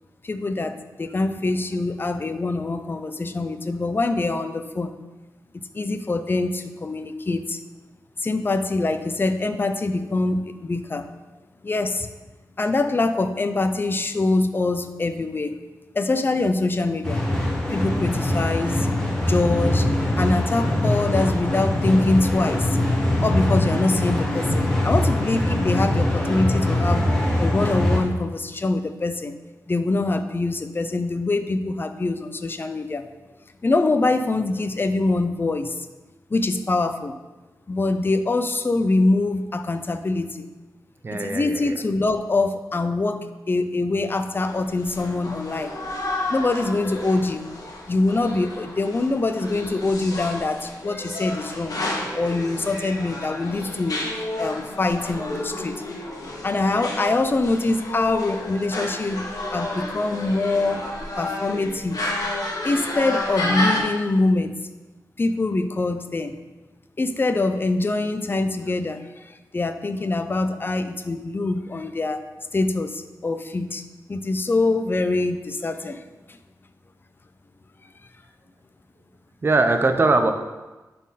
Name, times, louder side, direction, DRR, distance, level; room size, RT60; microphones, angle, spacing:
voice 1, 0.2-4.9 5.7-7.6 8.2-11.1 11.6-12.1 12.6-15.6 15.9-17.2 17.7-18.9 19.2-19.9 20.2-22.8 23.2-27.1 27.4-29.4 29.7-33.1 33.6-35.7 36.3-37.2 37.7-40.5 41.1-45.7 46.3-47.4 47.9-51.8 52.2-54.1 54.4-55.8 56.4-60.8 61.2-62.1 62.6-64.6 65.2-66.4 67.0-72.2 72.5-73.8 74.1-76.0 76.3-76.4, left 2 dB, 35° left, 9 dB, 0.6 m, -24 dB
sound 1, 17.0-28.0, left 1 dB, 10° left, 1.7 m, -22 dB
voice 2, 41.0-41.8 79.4-80.3, right 3 dB, 35° right, 6 dB, 0.6 m, -21 dB
sound 2, 44.4-63.8, left 1 dB, 65° left, 1.5 m, -31 dB
11.0 x 4.3 x 4.1 m, 1.2 s
wide cardioid pair, 100°, 7 cm